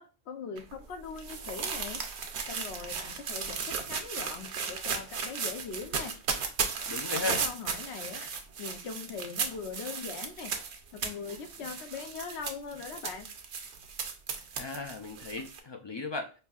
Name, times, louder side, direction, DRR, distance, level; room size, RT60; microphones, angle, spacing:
voice 1, 0.0-2.0 2.4-6.1 7.1-8.3 8.6-10.5 10.9-13.3, left 5 dB, 85° left, 5 dB, 1.0 m, -41 dB
sound 1, 0.6-15.6, right 5 dB, 85° right, 1.0 m, -35 dB
voice 2, 6.9-7.4 14.6-16.3, left 3 dB, 40° left, 4 dB, 0.4 m, -36 dB
5.3 x 2.7 x 2.3 m, 0.32 s
omnidirectional pair, 1.1 m